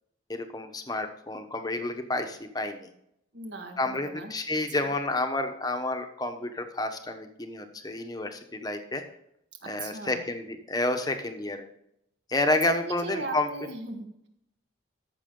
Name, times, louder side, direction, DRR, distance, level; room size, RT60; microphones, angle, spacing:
voice 1, 0.3-2.9 3.8-9.0 9.7-11.7 12.3-13.5, left 2 dB, 20° left, 6 dB, 1.0 m, -30 dB
voice 2, 3.3-4.3 4.8-4.9 9.6-10.3 12.8-14.3, right 2 dB, 60° right, 4 dB, 1.6 m, -39 dB
14.0 x 6.5 x 3.8 m, 0.76 s
head